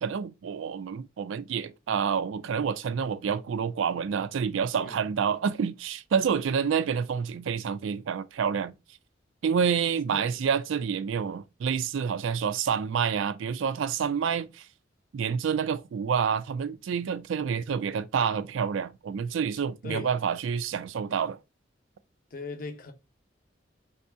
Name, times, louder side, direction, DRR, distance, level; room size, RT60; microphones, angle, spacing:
voice 1, 0.0-8.7 9.4-14.7 15.1-21.4, right 7 dB, 90° right, 0.4 m, -28 dB
voice 2, 22.3-22.9, left 3 dB, 45° left, 0.6 m, -38 dB
3.3 x 2.7 x 4.4 m
head